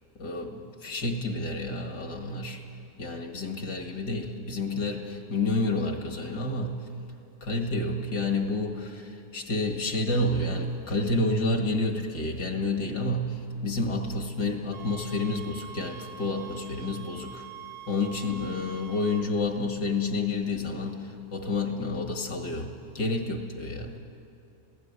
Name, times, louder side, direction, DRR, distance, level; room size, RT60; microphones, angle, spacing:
voice 1, 0.2-2.6 3.0-6.8 7.4-17.5 17.9-24.0, left 2 dB, 65° left, 3 dB, 2.6 m, -29 dB
sound 1, 14.7-19.3, right 8 dB, 60° right, 1.2 m, -45 dB
25.0 x 16.5 x 9.8 m, 2.6 s
omnidirectional pair, 1.9 m